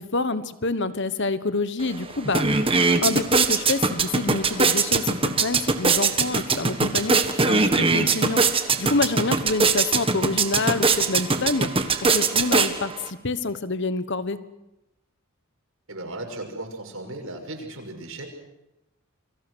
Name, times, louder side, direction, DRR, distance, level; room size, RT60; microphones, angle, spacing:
voice 1, 0.0-2.7 3.0-11.9 12.1-14.4, left 3 dB, 55° left, 13 dB, 1.3 m, -27 dB
sound 1, 1.8-1.9 2.2-13.1, right 4 dB, 25° right, 1.5 m, -22 dB
voice 2, 15.9-18.3, right 2 dB, 70° right, 3 dB, 6.1 m, -36 dB
29.0 x 23.5 x 6.4 m, 0.93 s
head